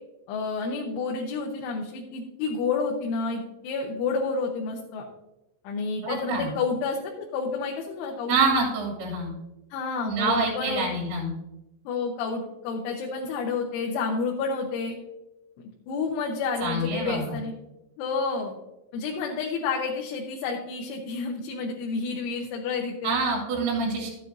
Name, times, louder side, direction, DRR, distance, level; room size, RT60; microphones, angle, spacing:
voice 1, 0.3-5.1 5.6-8.4 9.7-10.9 11.9-14.9 15.9-17.5 18.0-18.5 18.9-23.2, left 4 dB, 85° left, 0 dB, 3.5 m, -30 dB
voice 2, 6.0-6.5 8.3-9.3 10.1-11.3 16.6-17.4 23.0-24.1, right 3 dB, 60° right, -1 dB, 4.5 m, -26 dB
13.0 x 9.0 x 2.7 m, 0.93 s
omnidirectional pair, 5.4 m